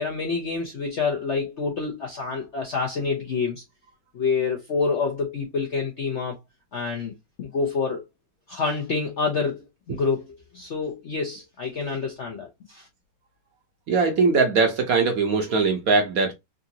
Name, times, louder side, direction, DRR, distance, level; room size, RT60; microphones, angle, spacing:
voice 1, 0.0-3.6 4.1-6.4 6.7-7.1 7.4-8.0 8.5-12.9, left 4 dB, 60° left, 0.7 m, -27 dB
voice 2, 13.9-16.3, right 4 dB, 60° right, 1.0 m, -21 dB
3.7 x 2.5 x 2.8 m
omnidirectional pair, 2.1 m